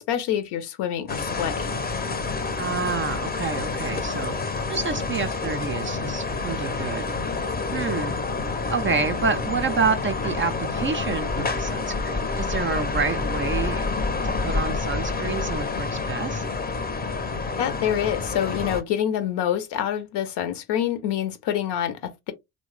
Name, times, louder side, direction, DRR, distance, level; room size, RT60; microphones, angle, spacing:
voice 1, 0.0-1.8 17.6-22.3, left 10 dB, 55° left, 0.8 m, -26 dB
sound 1, 1.1-18.8, left 4 dB, 20° left, 0.7 m, -28 dB
voice 2, 2.6-7.1 7.7-8.2 8.7-13.8 14.2-16.4, right 5 dB, 25° right, 0.4 m, -28 dB
3.0 x 2.1 x 3.2 m
hypercardioid pair, 50°, 49 cm